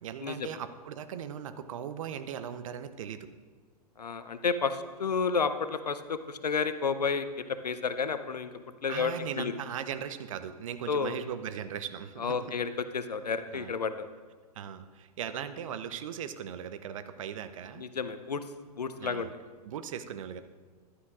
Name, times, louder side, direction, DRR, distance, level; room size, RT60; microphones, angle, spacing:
voice 1, 0.0-3.3 8.9-12.5 13.5-13.7 14.5-17.9 19.0-19.3 19.6-20.4, right 8 dB, 55° right, 11 dB, 0.8 m, -38 dB
voice 2, 4.0-8.5 8.8-9.5 10.9-11.2 12.2-14.1 17.8-18.4 18.8-19.3, left 5 dB, 75° left, 11 dB, 0.7 m, -31 dB
15.0 x 11.5 x 2.5 m, 1.5 s
figure-of-eight pair, 105°, 21 cm